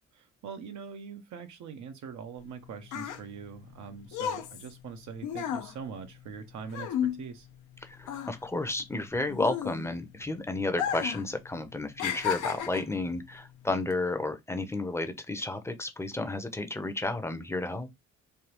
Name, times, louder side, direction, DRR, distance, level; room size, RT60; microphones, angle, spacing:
voice 1, 0.1-7.5, right 6 dB, 70° right, 0.7 m, -43 dB
rpg - cute girl dialogue sounds, 2.4-7.7 8.0-10.2 10.7-11.3 11.5-13.0 13.7-13.9, left 9 dB, 80° left, 0.7 m, -33 dB
voice 2, 7.8-17.9, left 2 dB, 10° left, 0.6 m, -32 dB
3.3 x 2.3 x 2.9 m
cardioid pair, 90°, 30 cm